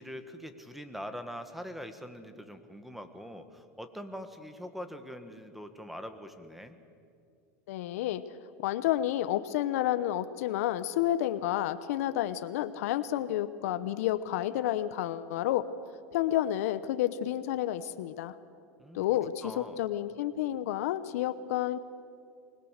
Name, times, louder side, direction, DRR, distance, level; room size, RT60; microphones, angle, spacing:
voice 1, 0.0-6.8 18.8-19.8, equal, ahead, 9 dB, 1.8 m, -43 dB
voice 2, 7.7-8.2 8.6-15.7 16.1-18.4 18.9-21.8, left 13 dB, 75° left, 14 dB, 0.9 m, -30 dB
24.5 x 20.5 x 6.6 m, 2.4 s
hypercardioid pair, 105°, 8 cm